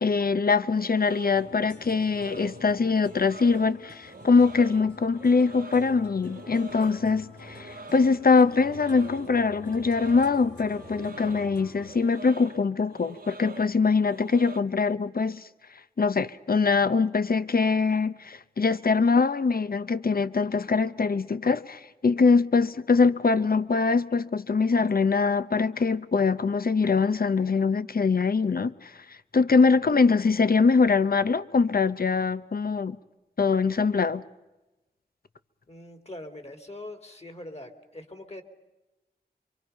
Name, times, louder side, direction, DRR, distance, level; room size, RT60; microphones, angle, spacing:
voice 1, 0.0-15.4 16.0-28.9 29.3-33.0 33.4-34.2, left 4 dB, 60° left, 0.8 m, -23 dB
sound 1, 0.7-14.6, right 3 dB, 60° right, 1.3 m, -45 dB
sound 2, 1.3-11.9, left 3 dB, 85° left, 5.3 m, -47 dB
voice 2, 35.7-38.4, left 1 dB, 35° left, 2.9 m, -42 dB
26.5 x 24.5 x 5.7 m
wide cardioid pair, 50°, 18 cm